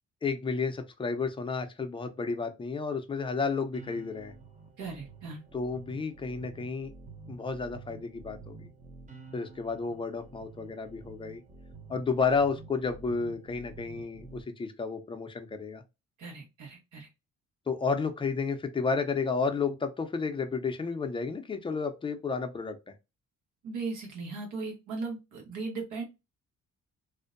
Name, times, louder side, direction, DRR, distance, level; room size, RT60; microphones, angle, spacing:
voice 1, 0.2-4.3 5.5-6.9 7.3-8.7 9.3-11.4 11.9-15.8 17.7-22.8, left 4 dB, 15° left, 0.5 m, -31 dB
sound 1, 3.7-14.4, right 4 dB, 25° right, 0.6 m, -49 dB
voice 2, 4.8-5.4 16.2-17.1 23.6-26.0, right 4 dB, 80° right, 1.1 m, -37 dB
2.6 x 2.1 x 2.4 m
cardioid pair, 90°, 30 cm